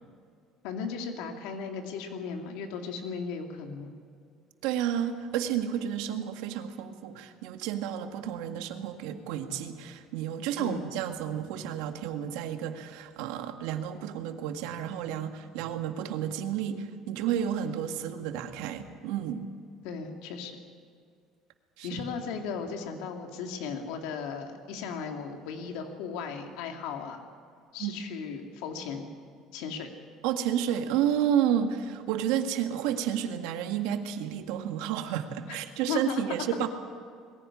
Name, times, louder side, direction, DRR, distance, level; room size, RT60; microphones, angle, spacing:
voice 1, 0.6-3.9 10.6-10.8 19.8-20.6 21.8-27.2 27.7-29.1 29.5-29.9 35.9-36.2, left 5 dB, 85° left, 3 dB, 2.4 m, -36 dB
voice 2, 4.6-19.5 21.8-22.0 27.8-27.9 30.2-36.7, right 9 dB, 85° right, 6 dB, 1.9 m, -31 dB
22.0 x 15.5 x 9.8 m, 2.2 s
cardioid pair, 155°, 0 cm